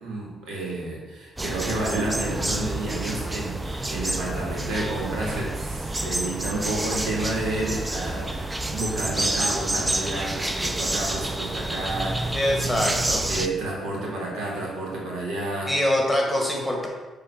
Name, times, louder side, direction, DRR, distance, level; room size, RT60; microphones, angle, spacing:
voice 1, 0.0-12.9 13.3-15.8, right 2 dB, 85° right, -3 dB, 2.0 m, -30 dB
sound 1, 1.4-13.5, right 2 dB, 15° right, 0.4 m, -28 dB
voice 2, 12.3-13.3 15.7-16.9, left 1 dB, 5° left, -1 dB, 1.6 m, -24 dB
6.7 x 3.3 x 5.8 m, 1.3 s
cardioid pair, 90°, 0 cm